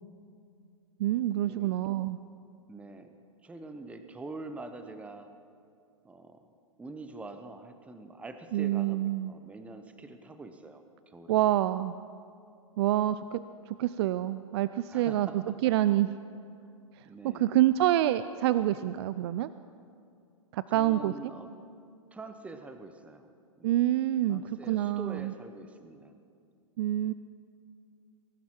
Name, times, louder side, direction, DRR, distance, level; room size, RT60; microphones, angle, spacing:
voice 1, 1.0-2.2 8.5-9.3 11.3-12.0 12.8-16.1 17.0-19.5 20.5-21.1 23.6-25.3 26.8-27.1, right 13 dB, 50° right, 14 dB, 0.4 m, -27 dB
voice 2, 2.7-3.1 3.4-5.3 6.0-6.4 6.8-11.4 14.9-15.6 17.1-17.5 20.7-21.5 22.1-23.3 23.6-23.8 24.3-26.2, right 3 dB, 5° right, 8 dB, 0.8 m, -45 dB
21.0 x 11.5 x 4.5 m, 2.4 s
hypercardioid pair, 115°, 18 cm